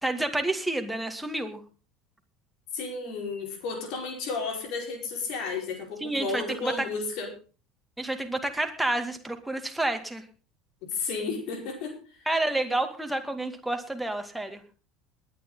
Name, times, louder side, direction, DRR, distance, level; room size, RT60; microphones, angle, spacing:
voice 1, 0.0-1.6 6.0-6.9 8.0-10.2 12.3-14.6, right 2 dB, 5° right, 5 dB, 2.4 m, -29 dB
voice 2, 2.7-7.3 10.9-12.0, left 4 dB, 55° left, 4 dB, 4.8 m, -32 dB
21.0 x 9.7 x 3.9 m, 0.35 s
figure-of-eight pair, 70°, 0 cm